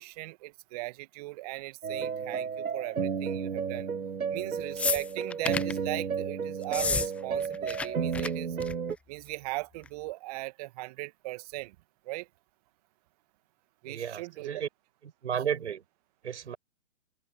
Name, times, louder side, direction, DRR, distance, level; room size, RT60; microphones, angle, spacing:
voice 1, 0.0-3.9 4.3-8.6 9.1-11.8 12.1-12.3 13.8-14.5, right 21 dB, 30° right, 2.0 m, -38 dB
sound 1, 1.8-9.0, right 6 dB, 85° right, 0.8 m, -32 dB
sound 2, 4.8-5.8 6.6-7.1 7.3-7.9 8.1-8.3 8.6-8.9 9.9-10.0, left 4 dB, 5° left, 0.7 m, -30 dB
voice 2, 13.8-14.7 15.0-15.8 16.2-16.6, right 8 dB, 55° right, 7.9 m, -33 dB
open air
figure-of-eight pair, 130°, 41 cm